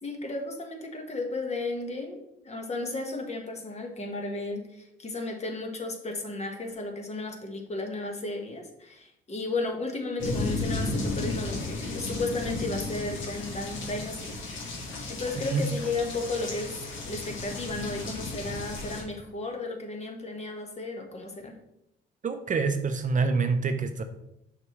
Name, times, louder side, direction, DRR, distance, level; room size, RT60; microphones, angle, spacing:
voice 1, 0.0-14.4 15.1-16.8 17.1-21.5, left 3 dB, 35° left, 3 dB, 1.4 m, -34 dB
sound 1, 10.2-19.0, left 2 dB, 75° left, 1.7 m, -34 dB
voice 2, 22.2-24.0, right 4 dB, 40° right, 8 dB, 0.6 m, -26 dB
6.5 x 5.9 x 3.1 m, 0.82 s
cardioid pair, 90°, 20 cm